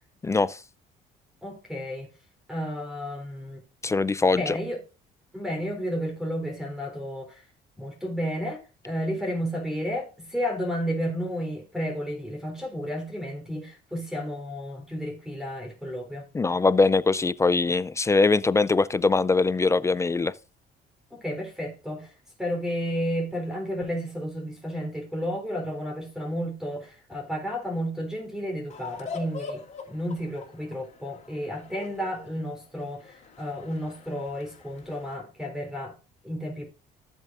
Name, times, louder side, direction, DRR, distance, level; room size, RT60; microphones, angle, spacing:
voice 1, 0.2-0.6 3.8-4.6 16.3-20.3, left 3 dB, 15° left, 0.4 m, -22 dB
voice 2, 1.4-2.1 2.5-3.6 4.3-4.8 5.3-7.4 7.8-16.3 21.1-22.1 22.4-35.9 36.2-36.7, equal, 5° right, 3.7 m, -32 dB
sound 1, 28.7-35.1, left 4 dB, 40° left, 3.2 m, -43 dB
15.5 x 7.1 x 2.5 m
cardioid pair, 110°, 17 cm